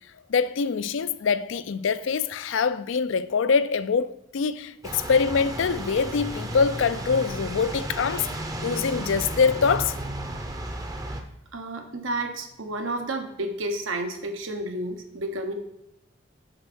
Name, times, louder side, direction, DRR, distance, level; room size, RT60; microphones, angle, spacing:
voice 1, 0.3-8.3 8.6-10.0, left 5 dB, 70° left, 0.4 m, -24 dB
sound 1, 4.8-11.2, right 1 dB, 20° right, 0.6 m, -33 dB
voice 2, 11.5-15.5, right 2 dB, 85° right, 1.1 m, -31 dB
6.6 x 4.5 x 6.1 m
head